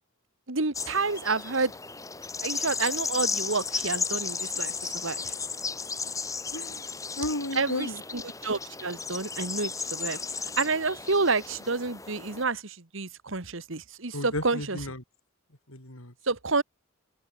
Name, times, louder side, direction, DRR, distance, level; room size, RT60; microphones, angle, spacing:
voice 1, 0.5-1.7 2.4-5.3 7.6-10.2 10.6-14.8 16.3-16.6, right 3 dB, 65° right, 1.7 m, -29 dB
sound 1, 0.7-12.4, left 5 dB, 15° left, 2.3 m, -34 dB
voice 2, 7.2-8.0 14.1-15.0 15.7-16.1, left 1 dB, 75° left, 6.8 m, -33 dB
open air
head